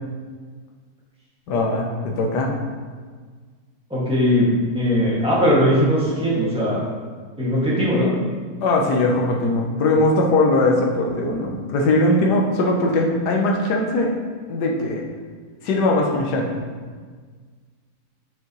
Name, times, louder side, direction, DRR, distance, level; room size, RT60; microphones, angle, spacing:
voice 1, 1.5-2.5 8.6-14.1 14.5-15.0 15.6-16.6, left 2 dB, 85° left, 0 dB, 1.4 m, -20 dB
voice 2, 3.9-6.8 7.4-8.1, equal, 5° right, -8 dB, 1.8 m, -19 dB
7.1 x 5.8 x 3.1 m, 1.5 s
omnidirectional pair, 1.7 m